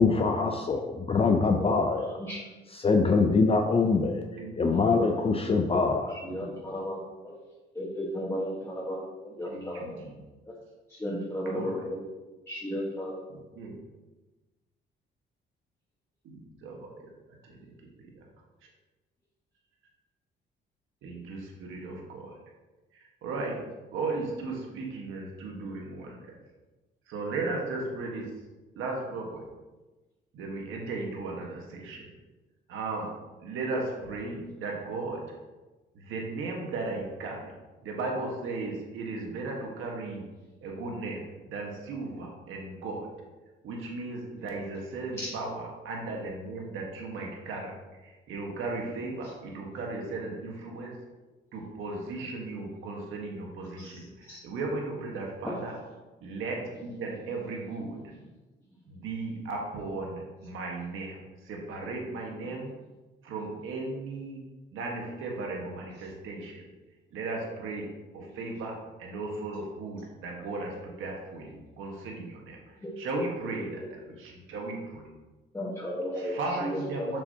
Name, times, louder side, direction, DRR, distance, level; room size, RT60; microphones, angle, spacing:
voice 1, 0.0-2.2 2.7-6.1, left 4 dB, 30° left, 3 dB, 0.5 m, -24 dB
voice 2, 1.5-2.4 2.9-3.0 4.8-5.3 6.1-7.3 7.7-10.0 10.5-10.6 10.9-12.1 12.5-13.2 45.2-45.3 49.2-49.3 53.8-54.4 55.4-55.6 62.4-62.5 72.8-73.9 75.5-77.2, equal, 15° left, -5 dB, 1.3 m, -35 dB
voice 3, 4.4-5.0 6.2-6.7 9.5-10.1 11.5-11.7 13.6-13.8 16.2-17.1 17.4-17.7 21.0-22.3 23.2-23.6 23.9-26.4 27.1-28.3 28.8-29.4 30.3-32.1 32.7-33.1 33.4-35.2 35.9-37.5 37.8-40.2 40.6-43.1 43.6-47.7 48.0-50.9 51.5-54.1 54.4-55.7 56.2-58.0 58.9-61.2 61.4-62.7 63.2-64.4 64.7-66.6 67.1-67.9 68.1-72.6 73.0-75.0 76.2-77.2, right 3 dB, 85° right, -1 dB, 1.4 m, -36 dB
7.0 x 6.8 x 2.8 m, 1.2 s
cardioid pair, 90°, 20 cm